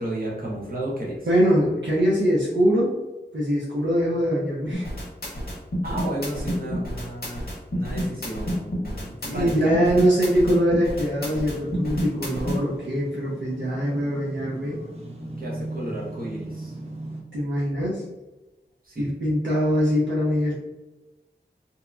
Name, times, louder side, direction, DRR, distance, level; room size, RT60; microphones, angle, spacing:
voice 1, 0.0-1.3 5.8-9.8 15.4-16.7 18.8-19.1, right 1 dB, 50° right, -5 dB, 0.9 m, -33 dB
voice 2, 1.2-3.0 3.3-4.9 9.2-14.8 17.3-18.0 19.0-20.5, equal, 75° right, -6 dB, 0.6 m, -23 dB
sound 1, 4.7-12.6, equal, 55° left, 0.7 m, -28 dB
sound 2, 11.1-17.2, right 1 dB, 35° right, 0.6 m, -38 dB
2.7 x 2.2 x 2.4 m, 1.1 s
wide cardioid pair, 55°, 19 cm